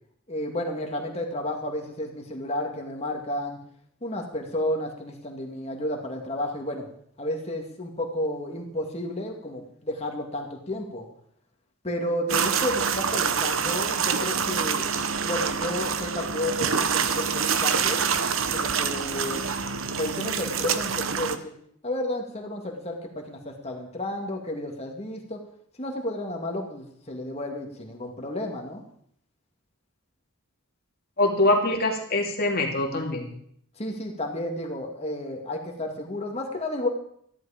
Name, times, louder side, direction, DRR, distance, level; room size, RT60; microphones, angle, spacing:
voice 1, 0.3-3.6 4.0-6.9 7.2-11.1 11.8-14.9 15.2-18.0 18.5-19.4 19.9-21.5 21.8-25.4 25.8-28.8 33.8-36.9, left 1 dB, 30° left, 1 dB, 2.2 m, -32 dB
sound 1, 12.3-21.4, right 6 dB, 60° right, 0.9 m, -26 dB
voice 2, 31.2-33.3, left 2 dB, 45° left, 1 dB, 2.5 m, -23 dB
14.0 x 11.5 x 5.1 m, 0.66 s
head